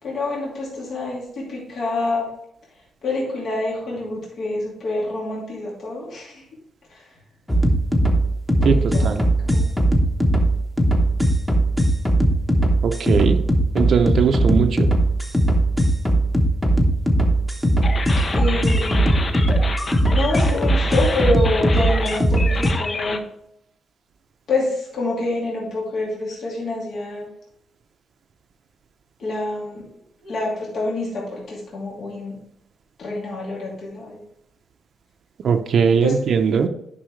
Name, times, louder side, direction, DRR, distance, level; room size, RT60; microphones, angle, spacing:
voice 1, 0.0-2.3 3.0-6.4 6.9-7.0 8.6-9.2 9.5-9.7 18.3-19.3 20.1-23.2 24.5-27.3 29.2-29.9 30.2-32.4 33.0-34.2 36.0-36.2, left 2 dB, 60° left, -4 dB, 2.6 m, -27 dB
sound 1, 7.5-22.7, right 1 dB, 5° left, 1.1 m, -19 dB
voice 2, 8.6-9.2 12.8-13.4 13.7-14.9 35.4-36.7, right 6 dB, 55° right, 6 dB, 0.7 m, -19 dB
sound 2, 17.8-23.2, left 3 dB, 35° left, 0.7 m, -28 dB
10.0 x 5.5 x 3.2 m, 0.76 s
cardioid pair, 125°, 0 cm